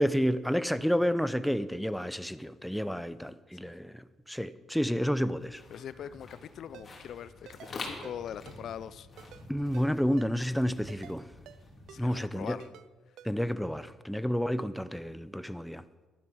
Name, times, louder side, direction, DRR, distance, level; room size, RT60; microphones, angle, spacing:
voice 1, 0.0-5.6 9.5-11.3 12.0-12.6 13.2-15.8, equal, ahead, 0.6 m, -30 dB
sound 1, 5.3-12.6, left 2 dB, 35° left, 3.4 m, -47 dB
voice 2, 5.7-9.1 11.9-12.7, left 9 dB, 70° left, 0.4 m, -42 dB
Ringtone, 6.7-6.9 7.5-7.7 8.0-8.2 8.5-8.6 9.2-9.4 9.7-9.9 10.2-10.3 10.9-11.2 11.5-11.6 11.9-12.0 12.6-12.9 13.2-13.3, right 10 dB, 80° right, 0.5 m, -50 dB
12.0 x 10.5 x 6.4 m
cardioid pair, 90°, 0 cm